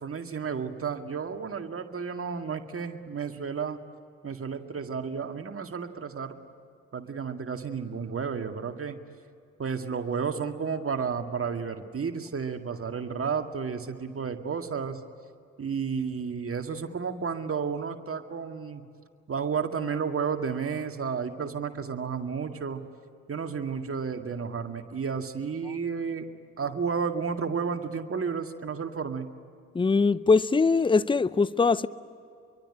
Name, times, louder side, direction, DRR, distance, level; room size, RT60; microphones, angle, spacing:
voice 1, 0.0-3.8 4.2-6.3 6.9-9.0 9.6-15.0 15.6-18.8 19.3-22.8 23.3-26.3 26.6-29.3, right 6 dB, 35° right, 2.1 m, -32 dB
voice 2, 29.7-31.9, left 4 dB, 15° left, 0.7 m, -22 dB
26.0 x 23.5 x 9.9 m
figure-of-eight pair, 40°, 37 cm